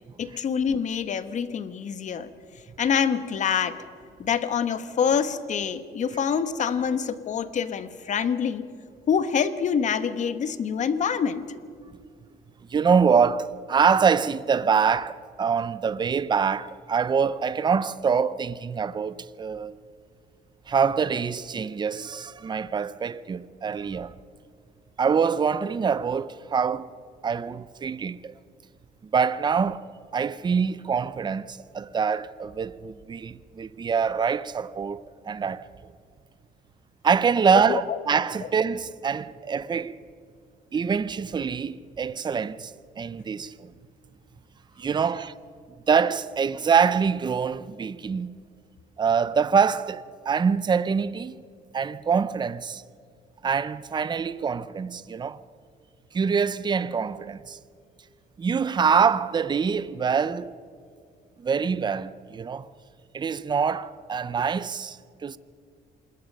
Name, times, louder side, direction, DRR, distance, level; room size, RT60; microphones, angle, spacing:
voice 1, 0.2-2.3 2.8-3.8 4.2-8.7 9.1-11.4 37.7-38.0 38.4-38.5, left 7 dB, 45° left, 1.3 m, -26 dB
voice 2, 12.7-19.8 20.7-24.1 25.0-26.9 27.2-28.3 29.0-29.8 30.1-35.6 37.0-40.0 40.7-43.7 44.8-45.3 45.9-48.3 49.0-51.3 51.7-52.8 53.4-55.4 56.1-57.6 58.4-60.5 61.4-62.7 63.1-65.4, right 6 dB, 25° right, 0.7 m, -25 dB
26.5 x 21.0 x 5.4 m
cardioid pair, 110°, 17 cm